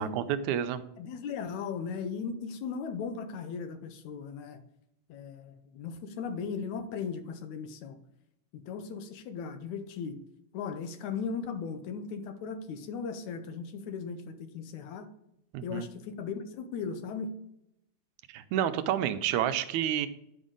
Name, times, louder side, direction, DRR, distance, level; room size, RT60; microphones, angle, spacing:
voice 1, 0.0-0.8 15.5-15.9 18.3-20.1, right 10 dB, 80° right, 11 dB, 1.9 m, -29 dB
voice 2, 1.0-4.6 5.1-8.0 8.7-10.2 10.5-15.1 15.6-17.3, left 5 dB, 75° left, 8 dB, 2.2 m, -37 dB
9.9 x 5.3 x 3.8 m, 0.79 s
omnidirectional pair, 3.4 m